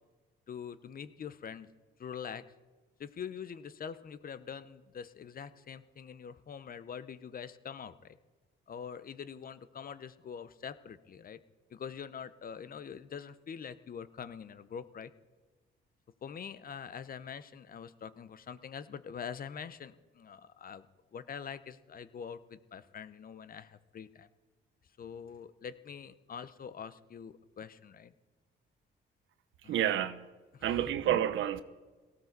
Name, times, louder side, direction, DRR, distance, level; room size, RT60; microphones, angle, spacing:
voice 1, 0.5-1.7 2.0-2.4 3.0-8.2 8.7-11.4 11.7-15.1 16.2-20.9 21.1-24.3 25.0-28.1 29.6-30.0 30.5-30.7 31.1-31.2, left 7 dB, 45° left, 0.9 m, -44 dB
voice 2, 29.6-30.2 30.6-31.6, right 11 dB, 80° right, 0.8 m, -29 dB
18.0 x 15.0 x 4.1 m
cardioid pair, 90°, 20 cm